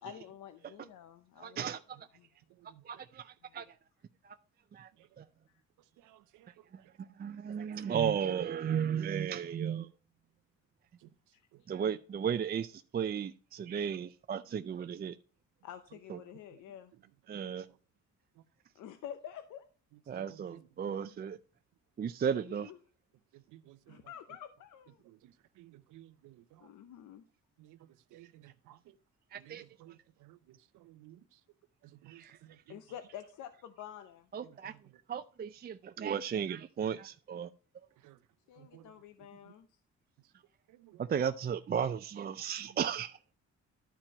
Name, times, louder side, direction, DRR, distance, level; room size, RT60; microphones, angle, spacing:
voice 1, 0.0-1.6 2.2-2.3 3.4-3.6 5.5-5.6 11.3-11.4 15.6-16.9 18.7-19.6 22.3-22.8 23.9-25.0 26.6-27.2 32.7-34.3 38.5-39.8, left 10 dB, 80° left, 0.7 m, -48 dB
voice 2, 1.4-2.0 2.8-3.8 4.2-4.4 4.7-4.9 5.2-5.3 6.7-9.9 11.7-15.2 16.1-16.2 17.3-17.7 20.1-21.4 22.0-22.7 29.3-29.6 32.1-32.4 34.3-34.7 35.1-37.5 41.0-43.3, right 8 dB, 30° right, 0.4 m, -35 dB
voice 3, 23.5-24.0 25.6-26.4 27.6-27.8 28.1-28.8 29.4-29.5 29.8-29.9 30.2-30.4 30.8-31.2 32.0-32.6 38.0-38.2 38.6-38.9 40.8-41.0, right 14 dB, 85° right, 0.6 m, -56 dB
11.5 x 4.5 x 5.1 m
cardioid pair, 90°, 30 cm